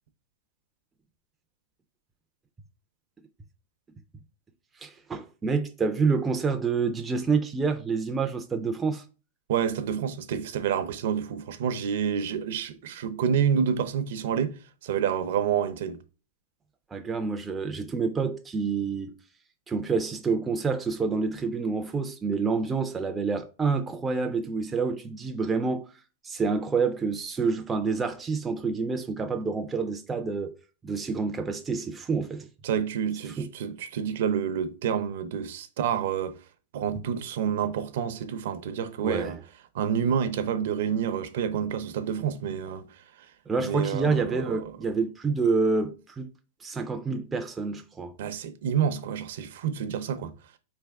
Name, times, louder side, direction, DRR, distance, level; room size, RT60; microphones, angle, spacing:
voice 1, 4.8-9.0 16.9-19.1 19.7-25.9 26.2-30.5 30.8-32.5 33.4-33.5 39.0-39.3 43.5-46.3 46.6-48.1, right 4 dB, 10° right, 0.3 m, -28 dB
voice 2, 9.5-16.0 32.6-36.3 36.7-39.4 39.7-43.0 43.6-44.7 48.2-50.3, right 8 dB, 60° right, 0.6 m, -28 dB
4.5 x 3.3 x 3.4 m
supercardioid pair, 165°, 0 cm